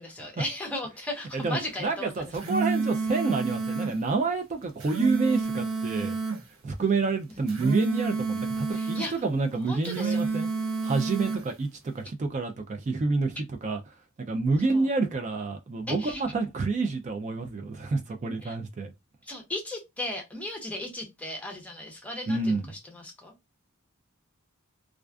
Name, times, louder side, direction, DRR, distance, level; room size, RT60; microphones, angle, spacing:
voice 1, 0.0-2.5 7.3-7.4 8.7-9.1 9.7-10.2 14.7-14.9 15.9-16.2 18.4-18.5 19.2-22.6 22.9-23.3, left 1 dB, 5° left, 0.6 m, -36 dB
voice 2, 1.3-6.2 6.6-10.5 10.8-13.8 14.3-18.9 22.3-22.7, right 3 dB, 35° right, 0.3 m, -28 dB
sound 1, 2.1-4.0 4.6-6.4 7.3-9.1 9.7-11.5, right 4 dB, 70° right, 0.7 m, -29 dB
2.3 x 2.3 x 2.2 m
head